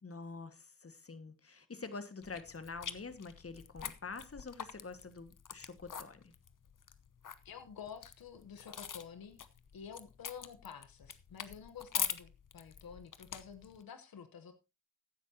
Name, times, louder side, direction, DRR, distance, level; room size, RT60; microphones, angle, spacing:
voice 1, 0.0-6.3, left 4 dB, 40° left, 10 dB, 1.7 m, -46 dB
sound 1, 2.2-13.8, left 8 dB, 65° left, 1.0 m, -44 dB
voice 2, 7.4-9.4 9.7-14.5, left 7 dB, 90° left, 9 dB, 1.0 m, -50 dB
15.0 x 10.0 x 2.8 m, 0.27 s
cardioid pair, 55°, 34 cm